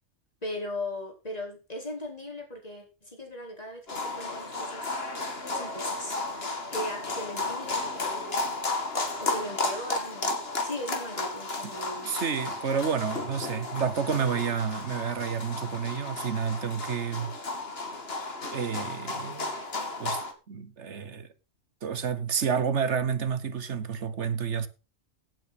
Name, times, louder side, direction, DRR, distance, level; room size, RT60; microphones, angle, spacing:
voice 1, 0.4-5.0 5.5-8.5 9.2-12.2, left 1 dB, 30° left, 4.8 m, -38 dB
sound 1, 3.9-20.3, left 2 dB, 50° left, 2.3 m, -33 dB
voice 2, 12.0-17.3 18.5-19.5 20.0-20.2 20.5-21.3 21.8-24.7, right 7 dB, 60° right, 1.4 m, -30 dB
17.0 x 8.5 x 4.2 m
omnidirectional pair, 1.3 m